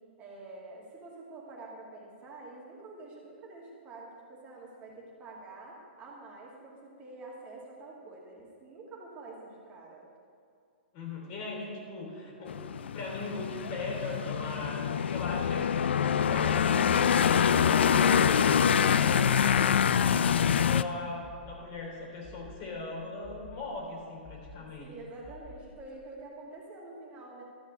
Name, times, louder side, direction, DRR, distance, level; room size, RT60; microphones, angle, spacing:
voice 1, 0.2-10.0 24.6-27.4, right 2 dB, 25° right, -3 dB, 2.4 m, -47 dB
voice 2, 10.9-12.7 12.9-24.9, left 2 dB, 40° left, -1 dB, 3.1 m, -39 dB
sound 1, 12.5-20.8, left 8 dB, 75° left, 0.4 m, -25 dB
sound 2, 21.2-21.9 22.2-22.9 23.2-23.9 24.2-24.9 25.2-25.9, left 4 dB, 15° left, 1.1 m, -51 dB
13.0 x 5.6 x 8.3 m, 2.4 s
hypercardioid pair, 125°, 6 cm